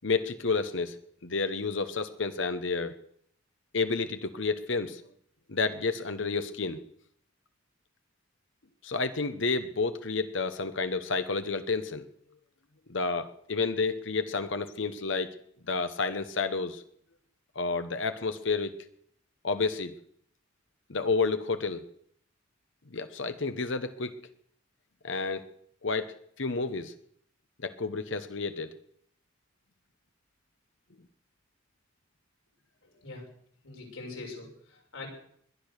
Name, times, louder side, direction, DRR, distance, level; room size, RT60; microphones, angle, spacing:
voice 1, 0.0-1.0 1.2-3.0 3.7-5.0 5.5-6.8 8.8-12.0 12.9-15.3 15.7-16.8 17.5-18.7 19.4-19.9 20.9-21.8 22.9-24.1 25.0-25.5 25.8-26.9 27.6-28.7, left 4 dB, 65° left, 10 dB, 1.0 m, -30 dB
voice 2, 33.6-35.1, left 3 dB, 90° left, 0 dB, 5.6 m, -42 dB
21.5 x 10.5 x 6.5 m, 0.66 s
head